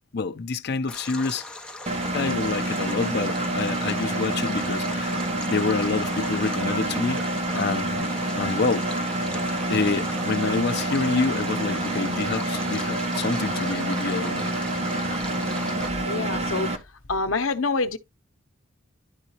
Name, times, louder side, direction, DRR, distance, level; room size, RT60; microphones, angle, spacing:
voice 1, 0.1-1.5 2.1-5.2 5.5-8.1 8.4-8.9 9.7-14.5, left 4 dB, 55° left, 0.6 m, -27 dB
Stream, 0.9-15.9, left 2 dB, 5° left, 0.8 m, -39 dB
Engine, 1.9-16.8, right 1 dB, 35° right, 1.0 m, -27 dB
voice 2, 15.4-16.7 17.1-18.0, left 3 dB, 85° left, 0.8 m, -27 dB
11.5 x 3.9 x 2.9 m
head